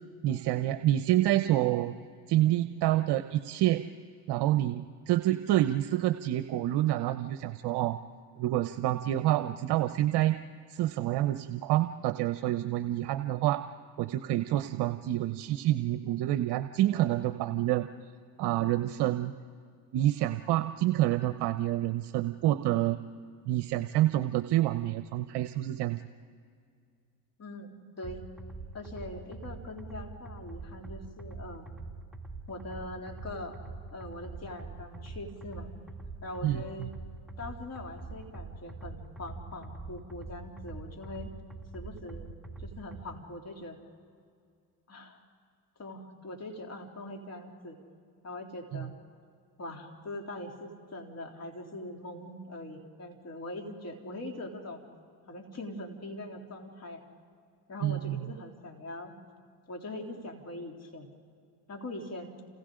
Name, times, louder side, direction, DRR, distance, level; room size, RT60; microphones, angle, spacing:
voice 1, 0.2-1.9 2.3-3.8 4.3-8.0 8.4-10.3 10.7-13.6 14.0-17.9 18.4-19.3 19.9-23.0 23.5-26.0 36.4-36.9 48.7-48.9 57.8-58.3, right 14 dB, 60° right, 10 dB, 0.9 m, -28 dB
voice 2, 27.4-28.2 28.7-31.7 32.5-33.6 33.9-35.7 36.2-36.9 37.4-41.3 41.7-42.3 42.6-43.8 44.9-45.2 45.8-47.8 48.2-48.9 49.6-54.8 55.3-57.0 57.7-59.1 59.7-61.1 61.7-62.4, left 1 dB, 35° left, 2 dB, 3.4 m, -42 dB
sound 1, 28.0-43.0, right 3 dB, ahead, 2.5 m, -44 dB
30.0 x 28.5 x 3.9 m, 2.2 s
supercardioid pair, 80°, 45 cm